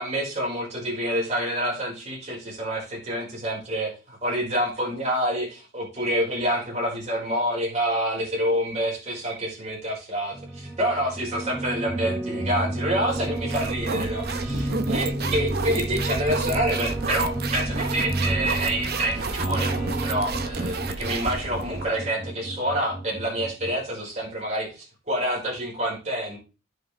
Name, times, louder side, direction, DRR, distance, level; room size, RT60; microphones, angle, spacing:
voice 1, 0.0-3.9 4.2-26.4, right 1 dB, 35° right, -4 dB, 5.0 m, -27 dB
sound 1, 10.3-23.7, right 1 dB, 15° right, 2.5 m, -31 dB
sound 2, 13.1-21.9, right 3 dB, 50° right, 0.8 m, -31 dB
16.5 x 5.5 x 3.4 m, 0.32 s
head